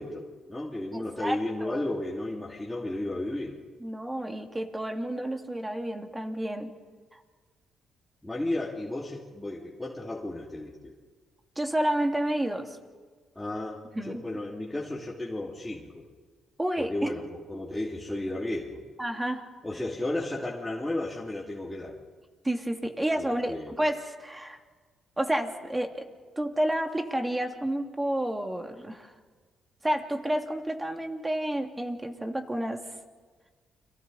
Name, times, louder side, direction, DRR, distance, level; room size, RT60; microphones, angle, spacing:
voice 1, 0.0-3.6 8.2-10.9 13.3-16.0 16.8-18.8 19.6-22.0 23.2-23.7, left 1 dB, 10° left, -5 dB, 2.9 m, -33 dB
voice 2, 0.9-1.9 3.8-6.7 7.1-7.2 11.6-12.8 13.9-14.2 16.6-16.9 19.0-19.4 22.4-24.6 25.2-26.0 26.4-29.1 29.8-32.8, right 1 dB, 10° right, 4 dB, 2.3 m, -30 dB
29.5 x 23.0 x 4.2 m, 1.5 s
cardioid pair, 90°, 0 cm